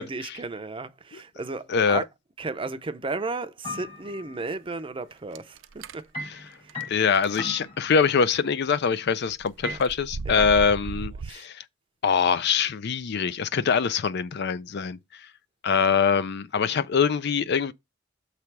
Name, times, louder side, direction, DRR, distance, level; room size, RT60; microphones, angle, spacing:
voice 1, 0.0-2.0 2.4-6.0 6.6-6.9 9.6-9.8 10.3-10.5 11.2-11.5, right 3 dB, 25° right, 0.6 m, -34 dB
voice 2, 1.7-2.0 6.3-6.4 6.9-11.6 12.0-15.0 15.6-17.7, left 6 dB, 60° left, 0.5 m, -23 dB
sound 1, 3.6-4.4 6.1-8.5 9.6-9.8, left 2 dB, 30° left, 1.4 m, -37 dB
sound 2, 5.3-6.0 6.7-6.8 7.1-7.4 8.0-8.3 9.2-11.3, right 4 dB, 80° right, 0.5 m, -36 dB
6.8 x 3.3 x 5.9 m
head